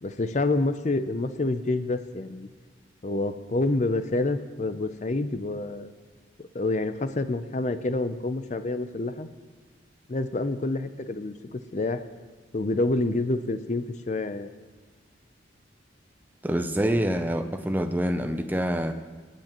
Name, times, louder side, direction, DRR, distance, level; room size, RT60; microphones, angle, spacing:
voice 1, 0.0-2.5 3.0-5.9 6.4-9.3 10.1-12.0 12.5-14.5, left 2 dB, 40° left, 11 dB, 0.5 m, -28 dB
voice 2, 16.4-18.9, equal, 10° right, 7 dB, 0.5 m, -26 dB
26.5 x 9.0 x 3.0 m, 1.4 s
head